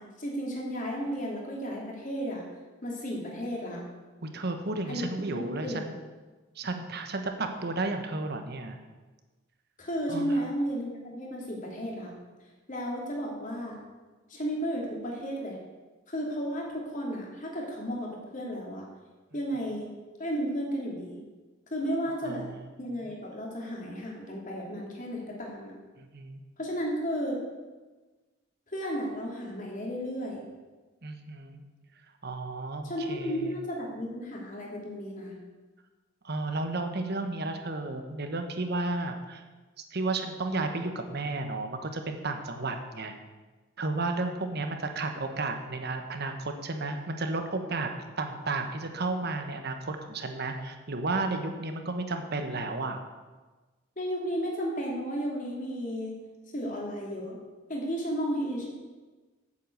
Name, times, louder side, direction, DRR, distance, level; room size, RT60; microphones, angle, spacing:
voice 1, 0.0-2.4 2.8-3.8 4.9-5.8 9.8-12.1 12.7-13.8 14.3-15.6 16.1-18.9 19.3-19.9 20.2-21.2 21.7-22.5 22.8-25.7 26.6-27.4 28.7-30.4 32.8-35.3 54.0-56.1 56.5-57.4 57.7-58.7, equal, 40° left, -2 dB, 2.9 m, -33 dB
voice 2, 4.2-6.0 6.6-8.8 10.1-10.4 22.2-22.5 23.0-23.1 26.0-26.4 31.0-31.6 32.2-33.5 36.2-39.4 39.9-43.1 43.8-47.9 48.2-53.0, right 2 dB, 55° right, 6 dB, 1.2 m, -33 dB
8.4 x 7.9 x 7.9 m, 1.3 s
head